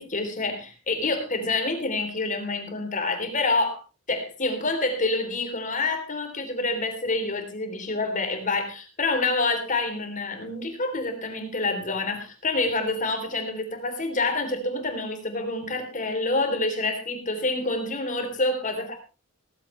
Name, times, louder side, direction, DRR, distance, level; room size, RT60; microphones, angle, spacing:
voice 1, 0.0-3.8 4.1-19.0, left 2 dB, 40° left, 6 dB, 3.4 m, -27 dB
17.0 x 15.0 x 3.3 m, 0.31 s
head